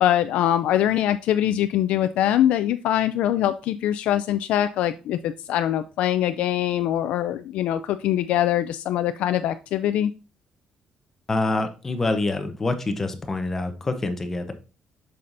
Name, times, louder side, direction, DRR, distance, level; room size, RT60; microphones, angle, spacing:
voice 1, 0.0-10.1, left 11 dB, 90° left, 10 dB, 0.3 m, -23 dB
voice 2, 11.3-14.5, left 2 dB, 15° left, 7 dB, 0.7 m, -26 dB
7.5 x 5.6 x 2.6 m, 0.33 s
cardioid pair, 180°, 2 cm